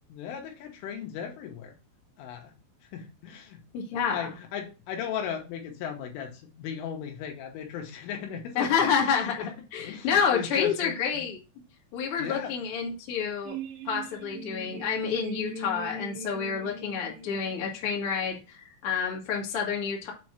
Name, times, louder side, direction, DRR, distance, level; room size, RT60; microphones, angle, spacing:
voice 1, 0.1-1.8 2.2-2.5 2.8-3.6 4.1-9.5 9.8-11.3 12.2-12.5, left 8 dB, 80° left, 2 dB, 3.7 m, -37 dB
voice 2, 3.7-4.3 8.5-11.4 11.9-13.6 13.8-20.1, left 6 dB, 45° left, -2 dB, 1.9 m, -29 dB
sound 1, 13.5-18.3, right 3 dB, 80° right, 2.6 m, -40 dB
8.3 x 3.1 x 5.9 m, 0.31 s
omnidirectional pair, 5.7 m